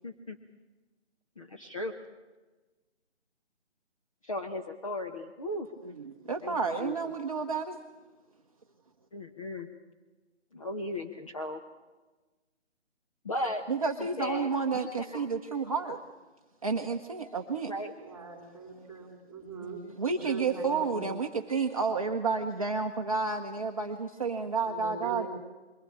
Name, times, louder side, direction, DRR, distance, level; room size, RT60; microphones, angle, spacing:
voice 1, 0.0-0.4 1.4-1.9 4.2-5.7 6.4-7.1 9.1-9.7 10.5-11.6 13.2-13.6 14.0-15.3 17.7-17.9, left 1 dB, 30° left, 3 dB, 1.0 m, -36 dB
voice 2, 5.8-7.8 13.7-16.0 16.6-17.7 20.0-25.3, right 4 dB, 30° right, 2 dB, 0.8 m, -31 dB
voice 3, 18.0-21.1 24.5-25.3, right 5 dB, ahead, 0 dB, 3.4 m, -41 dB
22.0 x 15.5 x 8.5 m, 1.2 s
figure-of-eight pair, 165°, 36 cm